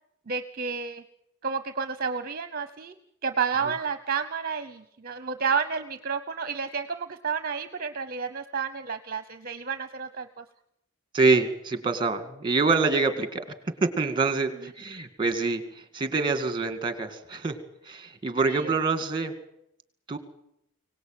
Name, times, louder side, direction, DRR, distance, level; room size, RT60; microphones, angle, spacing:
voice 1, 0.3-1.0 1.4-2.9 3.2-10.4 18.4-18.7, right 5 dB, 45° right, 10 dB, 0.9 m, -31 dB
voice 2, 11.1-13.4 13.8-15.6 15.9-17.6 17.9-19.3 20.1-20.2, right 3 dB, 20° right, 9 dB, 2.3 m, -25 dB
24.0 x 18.5 x 9.1 m, 0.79 s
head